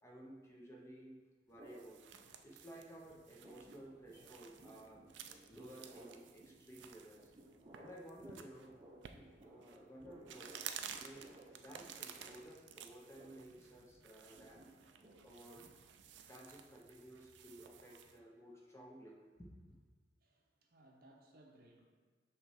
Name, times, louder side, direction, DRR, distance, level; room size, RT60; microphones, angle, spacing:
voice 1, 0.0-2.1 2.4-5.1 5.5-7.3 7.8-8.8 9.4-10.7 11.0-14.7 15.2-15.7 16.3-19.8, right 1 dB, 15° left, -2 dB, 0.8 m, -55 dB
sound 1, 1.5-18.2, right 8 dB, 70° right, 0.4 m, -54 dB
sound 2, 1.6-2.8 3.1-16.2, right 1 dB, 25° right, 0.7 m, -60 dB
voice 2, 17.7-18.2 20.2-21.8, right 1 dB, 55° right, 1 dB, 0.8 m, -65 dB
6.0 x 3.2 x 5.6 m, 1.5 s
head